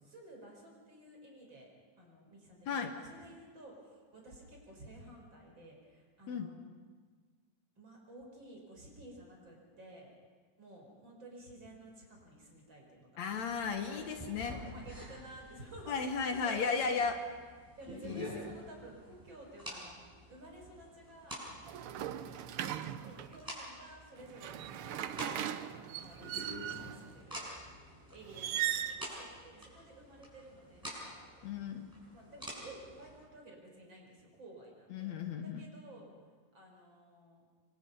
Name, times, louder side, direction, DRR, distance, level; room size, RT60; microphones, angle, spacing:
voice 1, 0.0-1.7 2.0-6.6 7.8-10.1 10.6-13.3 13.8-14.1 14.4-17.1 17.8-20.0 20.3-21.4 21.8-22.5 23.0-27.4 28.1-31.2 32.1-36.1 36.5-37.4, right 1 dB, 35° right, 0 dB, 5.6 m, -53 dB
voice 2, 13.2-14.5 15.9-17.1 18.0-18.2 31.4-31.9 34.9-35.7, left 5 dB, 65° left, 5 dB, 2.5 m, -35 dB
sound 1, 13.3-33.2, equal, 5° right, 7.3 m, -49 dB
sound 2, 21.7-23.4 24.2-27.0 28.3-29.0, right 11 dB, 75° right, 1.3 m, -38 dB
27.5 x 24.5 x 5.6 m, 1.6 s
omnidirectional pair, 3.5 m